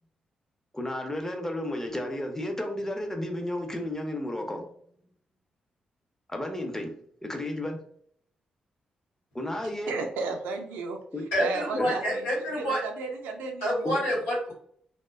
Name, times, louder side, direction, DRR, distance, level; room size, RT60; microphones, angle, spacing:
voice 1, 0.7-4.6 6.3-6.9 7.2-7.8 9.3-9.9 11.1-11.2 11.8-11.9 13.8-14.0, left 1 dB, 15° left, 3 dB, 0.7 m, -32 dB
voice 2, 9.9-11.0 11.4-13.8, right 3 dB, 85° right, 3 dB, 0.4 m, -34 dB
voice 3, 11.3-12.8 13.6-14.5, equal, 90° left, -5 dB, 1.0 m, -27 dB
2.5 x 2.1 x 2.3 m, 0.63 s
hypercardioid pair, 45°, 3 cm